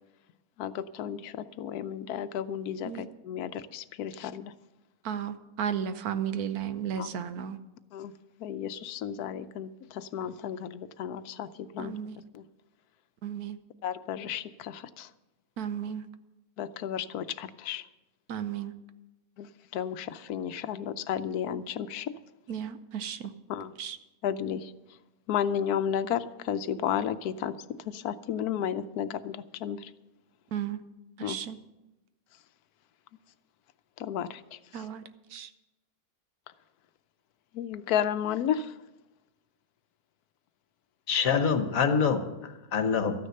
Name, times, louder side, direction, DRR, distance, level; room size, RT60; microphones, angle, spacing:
voice 1, 0.6-4.5 7.0-7.1 7.9-8.1 8.4-11.9 12.3-12.4 13.8-15.1 16.6-17.8 19.4-22.1 23.5-23.7 24.2-24.7 25.3-27.5 27.9-29.9 31.2-31.4 34.0-34.4 37.5-38.7, left 9 dB, 85° left, 13 dB, 1.1 m, -33 dB
voice 2, 5.0-7.6 11.8-12.2 13.2-13.6 15.6-16.0 18.3-18.7 22.5-23.3 23.8-24.0 30.5-30.8 31.2-31.6 34.7-35.0 35.3-35.5, right 8 dB, 85° right, 11 dB, 1.3 m, -34 dB
voice 3, 41.1-43.1, left 6 dB, 65° left, 7 dB, 1.5 m, -26 dB
13.5 x 9.7 x 6.5 m, 1.0 s
omnidirectional pair, 1.6 m